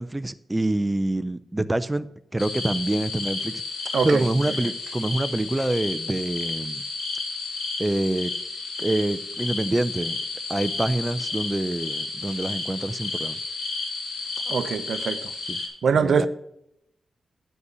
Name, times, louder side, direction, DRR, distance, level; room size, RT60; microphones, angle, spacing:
voice 1, 0.0-3.6 4.0-6.8 7.8-8.3 8.8-10.2 10.5-13.4 15.5-15.6 16.0-16.3, right 1 dB, 15° right, 0.3 m, -26 dB
sound 1, 2.4-15.7, left 3 dB, 70° left, 2.7 m, -32 dB
voice 2, 3.9-4.2 14.5-15.3 15.8-16.3, right 6 dB, 65° right, 0.6 m, -23 dB
9.6 x 5.4 x 6.6 m
wide cardioid pair, 120°, 0 cm